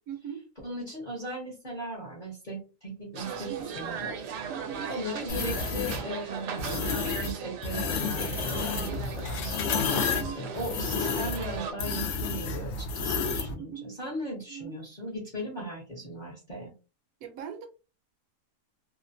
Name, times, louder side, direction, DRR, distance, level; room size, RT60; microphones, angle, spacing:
voice 1, 0.1-0.5 3.5-3.7 4.5-4.9 8.9-9.3 9.9-10.4 13.5-14.0 14.5-14.8 17.2-17.7, right 9 dB, 65° right, 0.9 m, -41 dB
voice 2, 0.6-4.2 4.9-6.9 7.1-9.9 10.3-16.7, right 1 dB, 40° left, 0.7 m, -38 dB
sound 1, 3.1-11.7, right 6 dB, 85° right, 1.2 m, -38 dB
sound 2, 5.3-6.0 6.6-7.3 7.6-13.5, left 5 dB, 85° left, 0.6 m, -30 dB
2.8 x 2.1 x 2.6 m
omnidirectional pair, 1.8 m